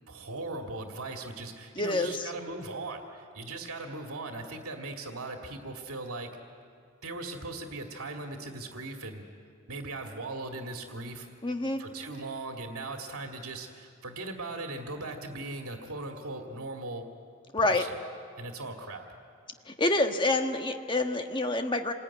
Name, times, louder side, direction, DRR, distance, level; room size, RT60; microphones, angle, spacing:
voice 1, 0.1-6.3 7.0-9.2 9.7-11.3 11.8-17.1 17.6-18.0 18.4-19.1, right 2 dB, 80° right, 3 dB, 2.2 m, -39 dB
voice 2, 1.8-2.3 11.4-11.8 17.5-17.8 19.7-21.9, left 2 dB, 20° left, 6 dB, 1.5 m, -27 dB
27.5 x 20.5 x 9.8 m, 2.3 s
head